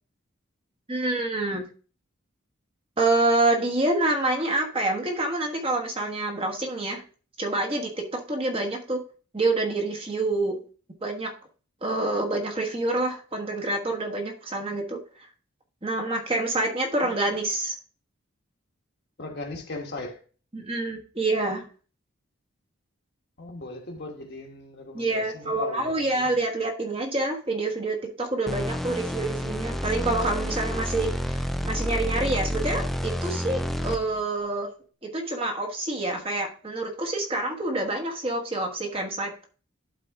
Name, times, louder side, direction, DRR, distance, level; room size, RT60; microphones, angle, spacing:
voice 1, 0.9-1.7 3.0-7.0 7.4-9.0 9.3-10.6 11.0-11.3 11.8-15.0 15.8-17.7 20.5-21.6 24.9-34.7 35.0-39.3, right 2 dB, 25° right, 1.2 m, -27 dB
voice 2, 19.2-20.2 23.4-26.3, left 2 dB, 50° left, 1.4 m, -38 dB
sound 1, 28.5-34.2, equal, ahead, 0.3 m, -29 dB
11.5 x 4.2 x 3.5 m
head